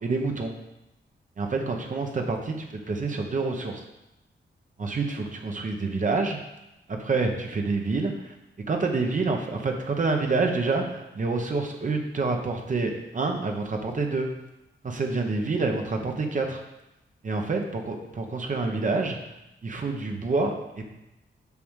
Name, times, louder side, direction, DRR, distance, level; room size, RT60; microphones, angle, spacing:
voice 1, 0.0-0.5 1.4-3.8 4.8-6.4 6.9-8.3 8.7-14.3 14.8-16.6 17.2-19.2 19.6-20.8, right 3 dB, 40° right, 2 dB, 1.0 m, -27 dB
7.1 x 5.1 x 6.4 m, 0.92 s
wide cardioid pair, 155°, 20 cm